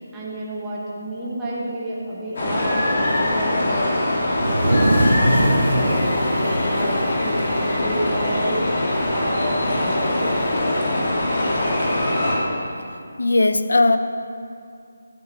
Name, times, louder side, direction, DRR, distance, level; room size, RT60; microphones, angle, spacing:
voice 1, 0.0-3.9 5.4-8.7 9.1-10.7, right 1 dB, 5° right, -8 dB, 0.9 m, -31 dB
sound 1, 2.4-12.4, left 1 dB, 35° left, 1.6 m, -22 dB
sound 2, 4.3-8.0 8.3-8.5 8.8-9.3 10.4-10.5 11.6-11.7, right 1 dB, 80° right, 1.7 m, -22 dB
voice 2, 13.2-14.0, left 2 dB, 80° left, 10 dB, 0.6 m, -17 dB
11.5 x 10.0 x 3.0 m, 2.4 s
figure-of-eight pair, 180°, 0 cm